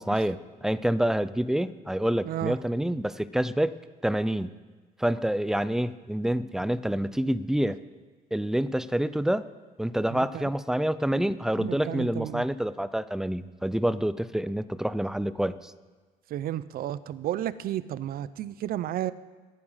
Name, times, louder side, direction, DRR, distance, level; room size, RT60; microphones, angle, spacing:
voice 1, 0.0-3.7 4.0-4.5 5.0-7.8 8.3-9.5 9.8-15.7, right 1 dB, 5° right, 16 dB, 0.4 m, -27 dB
voice 2, 2.2-2.6 10.1-10.5 11.6-12.4 16.3-19.1, right 12 dB, 60° right, 17 dB, 0.6 m, -32 dB
14.0 x 9.7 x 5.6 m, 1.4 s
cardioid pair, 110°, 17 cm